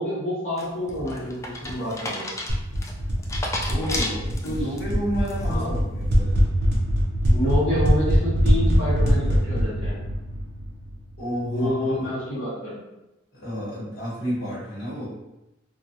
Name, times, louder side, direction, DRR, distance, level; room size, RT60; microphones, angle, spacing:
voice 1, 0.0-2.3 4.4-4.6 5.5-5.7 7.3-10.0 11.4-12.8, equal, 70° left, -11 dB, 1.0 m, -28 dB
sound 1, 0.6-4.8 5.2-5.7, left 1 dB, 15° left, 0.3 m, -32 dB
sound 2, 2.5-11.2, equal, 55° right, 0.6 m, -23 dB
voice 2, 3.7-6.4 11.2-12.0 13.3-15.1, equal, 55° left, -7 dB, 1.2 m, -30 dB
2.9 x 2.3 x 2.7 m, 0.94 s
head